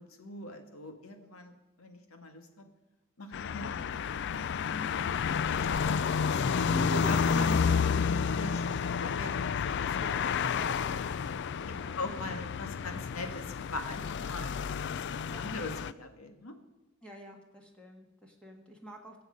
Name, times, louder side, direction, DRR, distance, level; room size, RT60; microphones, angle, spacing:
voice 1, 0.0-1.5 1.8-2.6 3.2-4.2 4.7-6.4 6.9-10.5 11.7-14.5 14.9-16.5, left 2 dB, 90° left, 5 dB, 1.8 m, -42 dB
sound 1, 3.3-15.9, left 6 dB, 55° left, 0.4 m, -30 dB
voice 2, 6.7-7.5 9.9-11.3 11.6-12.0 15.3-15.4 17.0-19.2, right 1 dB, 5° left, 0 dB, 1.6 m, -46 dB
22.0 x 7.9 x 5.2 m, 1.1 s
head